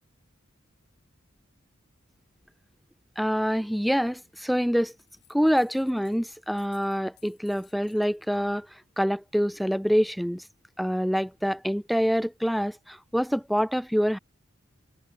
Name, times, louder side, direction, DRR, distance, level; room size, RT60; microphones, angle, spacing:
voice 1, 3.2-4.9 5.3-10.4 10.8-14.2, equal, ahead, 0.4 m, -26 dB
sound 1, 4.8-6.2 6.4-8.2, left 15 dB, 55° left, 5.9 m, -61 dB
head